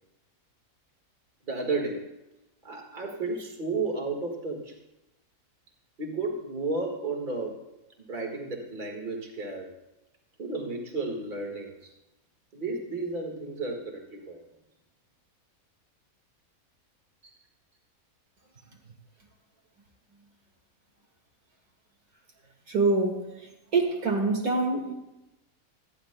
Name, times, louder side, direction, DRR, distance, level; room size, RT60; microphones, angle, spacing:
voice 1, 1.5-2.1 2.6-4.8 6.0-7.6 8.0-9.7 10.4-11.9 12.5-14.4 17.2-17.3, right 3 dB, 35° right, 1 dB, 1.9 m, -33 dB
voice 2, 22.7-24.9, right 3 dB, 70° right, 1 dB, 2.3 m, -26 dB
27.5 x 10.0 x 2.2 m, 0.94 s
omnidirectional pair, 1.5 m